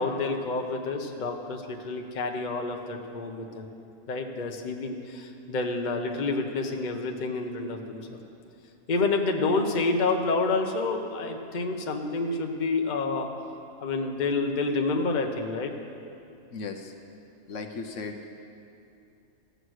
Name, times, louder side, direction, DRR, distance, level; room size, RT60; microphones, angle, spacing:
voice 1, 0.0-3.7 4.1-8.0 8.9-13.3 13.8-15.7, left 3 dB, 40° left, 3 dB, 0.9 m, -28 dB
voice 2, 16.5-16.9 17.5-18.2, left 4 dB, 70° left, 4 dB, 1.1 m, -36 dB
14.5 x 8.0 x 6.3 m, 2.6 s
omnidirectional pair, 1.4 m